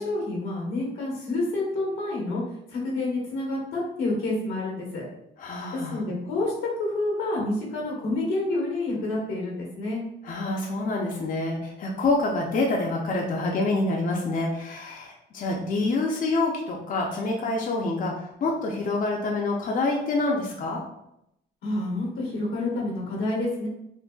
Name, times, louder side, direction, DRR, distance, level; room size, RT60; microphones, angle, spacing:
voice 1, 0.0-2.4 2.7-5.1 5.9-10.0 21.6-23.7, left 2 dB, 90° left, -3 dB, 1.2 m, -28 dB
voice 2, 5.4-6.0 10.2-20.8, left 2 dB, 45° left, -1 dB, 0.5 m, -27 dB
3.8 x 2.1 x 2.2 m, 0.81 s
cardioid pair, 90°, 20 cm